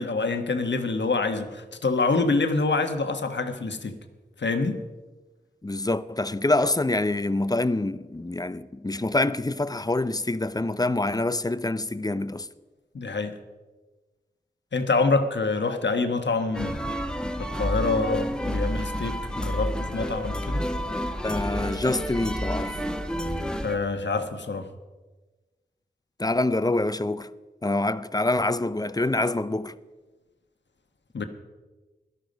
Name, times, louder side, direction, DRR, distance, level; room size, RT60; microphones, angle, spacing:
voice 1, 0.0-3.9 4.4-4.8 12.9-13.4 14.7-16.8 17.4-20.7 23.6-24.7 31.1-31.2, left 3 dB, 85° left, 1.3 m, -26 dB
voice 2, 5.6-12.5 21.2-22.8 26.2-27.3 27.6-29.7, left 2 dB, 20° left, 0.5 m, -26 dB
sound 1, 16.5-23.8, equal, 5° left, 1.1 m, -29 dB
17.5 x 12.5 x 5.3 m
wide cardioid pair, 80°, 18 cm